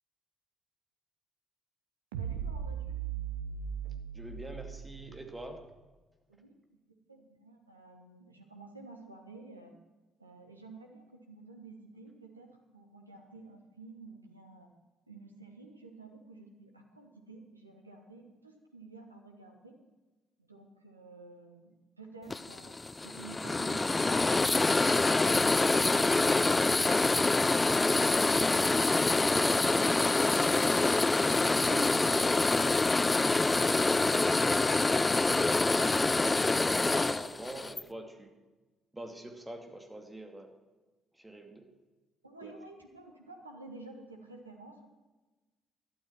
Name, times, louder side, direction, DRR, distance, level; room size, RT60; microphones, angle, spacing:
sound 1, 2.1-5.5, right 8 dB, 70° right, 0.8 m, -38 dB
voice 1, 2.2-2.9 6.3-6.5 7.1-9.7 10.2-12.5 12.7-14.7 15.1-19.8 20.4-26.4 42.2-44.9, right 3 dB, 85° right, 3 dB, 1.2 m, -51 dB
voice 2, 3.8-5.6 28.3-28.7 29.3-30.0 31.2-32.3 33.0-38.3 38.9-40.5 41.1-41.7 42.4-42.5, right 1 dB, 15° right, 4 dB, 2.3 m, -44 dB
sound 2, 22.3-37.8, left 3 dB, 20° left, 0.4 m, -26 dB
12.0 x 12.0 x 5.9 m, 1.2 s
figure-of-eight pair, 45°, 0 cm